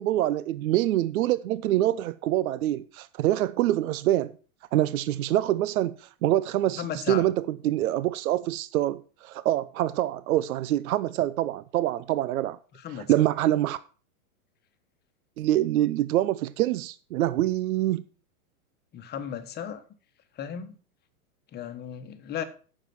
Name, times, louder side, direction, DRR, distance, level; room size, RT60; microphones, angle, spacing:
voice 1, 0.0-4.3 4.7-12.6 12.9-13.8 15.4-18.0, right 14 dB, 75° right, 0.7 m, -25 dB
voice 2, 6.8-7.3 12.8-13.1 18.9-19.8 20.4-20.8 21.5-22.4, left 8 dB, 20° left, 1.3 m, -35 dB
9.0 x 6.8 x 5.9 m
supercardioid pair, 140°, 43 cm